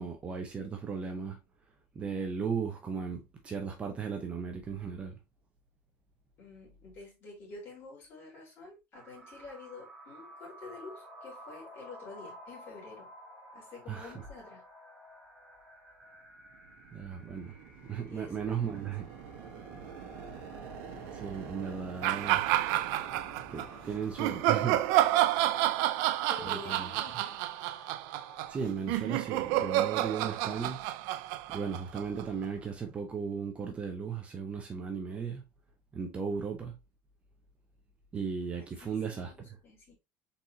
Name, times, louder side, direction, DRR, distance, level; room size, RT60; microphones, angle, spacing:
voice 1, 0.0-1.4 1.9-5.2 13.9-14.1 16.9-17.6 17.8-19.0 21.1-22.5 23.5-24.8 26.4-26.9 28.5-30.8 31.5-35.4 35.9-36.8 38.1-39.3, right 6 dB, 20° right, 0.7 m, -36 dB
voice 2, 6.4-13.1 13.5-14.6 18.1-18.9 26.3-27.4 38.8-39.9, left 3 dB, 40° left, 3.0 m, -49 dB
sound 1, 8.9-28.5, equal, 5° right, 1.6 m, -52 dB
sound 2, 16.3-26.1, right 7 dB, 85° right, 1.0 m, -48 dB
sound 3, 22.0-23.7 24.2-32.4, right 14 dB, 65° right, 0.4 m, -29 dB
4.1 x 4.1 x 2.9 m
cardioid pair, 160°, 6 cm